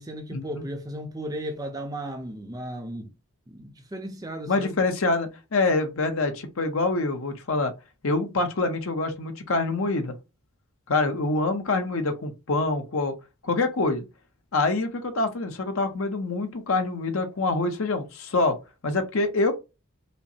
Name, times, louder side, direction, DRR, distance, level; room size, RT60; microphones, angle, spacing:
voice 1, 0.0-3.1 3.5-4.7, right 1 dB, 15° right, 0.5 m, -35 dB
voice 2, 4.5-7.7 8.0-10.1 10.9-13.1 13.4-14.0 14.5-18.6 18.8-19.5, left 3 dB, 65° left, 0.7 m, -25 dB
5.1 x 2.1 x 2.7 m
head